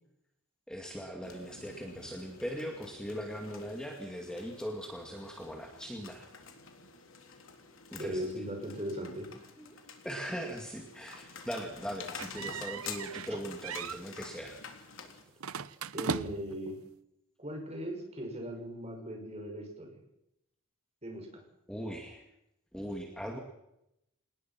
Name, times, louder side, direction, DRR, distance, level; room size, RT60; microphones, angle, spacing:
voice 1, 0.7-6.3 7.9-8.3 9.6-9.8 10.0-14.6 15.6-15.7 21.7-22.2 22.7-23.4, equal, 5° left, 2 dB, 2.2 m, -40 dB
sound 1, 1.2-15.2, left 5 dB, 70° left, 3.5 m, -49 dB
voice 2, 8.0-9.3 15.9-16.8 17.4-20.0 21.0-21.4, equal, 30° right, 2 dB, 6.5 m, -38 dB
sound 2, 12.2-13.4 13.6-14.0 15.4-16.6, right 5 dB, 85° right, 0.9 m, -38 dB
27.0 x 19.5 x 6.1 m, 0.83 s
head